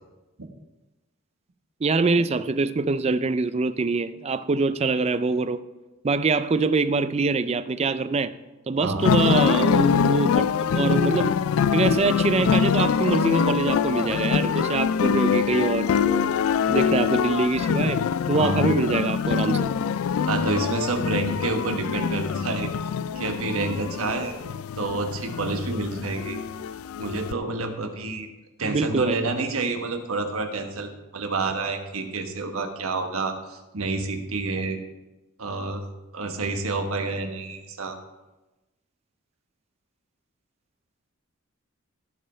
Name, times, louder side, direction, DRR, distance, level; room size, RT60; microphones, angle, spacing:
voice 1, 1.8-5.6 6.0-8.3 8.7-11.4 11.7-16.3 16.7-19.7 28.6-29.2, right 3 dB, 30° right, 0.4 m, -24 dB
sound 1, 9.0-27.3, left 7 dB, 80° left, 0.3 m, -24 dB
voice 2, 18.3-18.7 20.2-22.7 23.1-24.3 24.8-26.4 27.0-28.3 28.6-34.8 35.4-35.8 36.1-38.0, right 3 dB, 85° right, 1.3 m, -28 dB
16.5 x 5.5 x 4.4 m
head